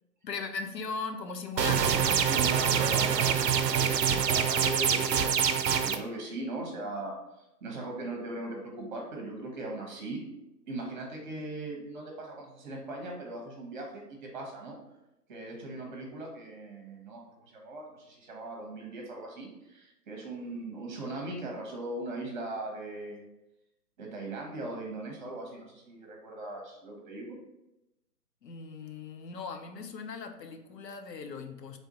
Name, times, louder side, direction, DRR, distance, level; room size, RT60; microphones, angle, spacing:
voice 1, 0.2-2.4 28.4-31.8, left 4 dB, 80° left, 7 dB, 0.7 m, -39 dB
sound 1, 1.6-6.0, right 7 dB, 80° right, 0.5 m, -25 dB
voice 2, 2.3-5.3 5.7-10.2 10.7-14.8 15.3-23.2 24.0-27.4, right 2 dB, 30° right, 1 dB, 1.0 m, -39 dB
3.4 x 2.5 x 4.0 m, 0.91 s
figure-of-eight pair, 140°, 48 cm